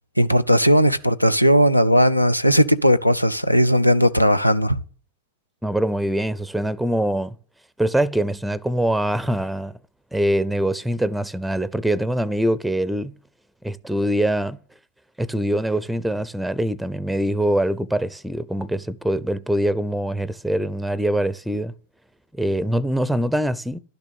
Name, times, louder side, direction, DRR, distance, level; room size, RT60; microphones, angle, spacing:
voice 1, 0.2-4.8, equal, 90° left, 0.6 m, -17 dB
voice 2, 5.6-7.3 7.8-9.8 10.1-13.1 13.6-14.6 15.2-21.7 22.3-23.8, right 1 dB, ahead, 0.5 m, -23 dB
11.5 x 6.7 x 9.3 m
figure-of-eight pair, 90°, 0 cm